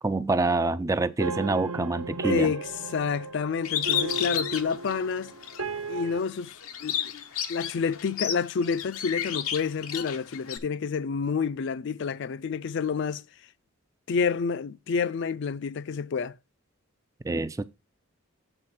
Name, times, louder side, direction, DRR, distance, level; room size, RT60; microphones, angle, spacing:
voice 1, 0.0-2.5 17.2-17.6, right 3 dB, 15° right, 0.3 m, -26 dB
sound 1, 1.2-6.2, right 4 dB, 75° right, 0.8 m, -35 dB
voice 2, 2.2-2.6 2.9-5.3 5.9-7.0 7.5-13.2 14.1-16.3, left 5 dB, 55° left, 0.4 m, -29 dB
Bird, 3.6-5.6 6.1-10.6, left 10 dB, 90° left, 0.8 m, -31 dB
8.0 x 4.1 x 5.9 m
head